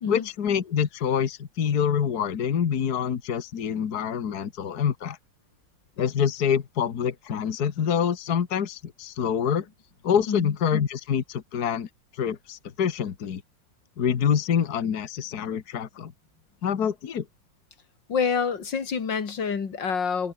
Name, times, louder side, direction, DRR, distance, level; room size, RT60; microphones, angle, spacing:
voice 1, 0.1-5.2 6.0-9.7 10.0-11.9 12.1-13.4 14.0-16.1 16.6-17.3, left 8 dB, 60° left, 1.9 m, -26 dB
voice 2, 18.1-20.3, left 6 dB, 90° left, 3.0 m, -27 dB
omnidirectional pair, 1.9 m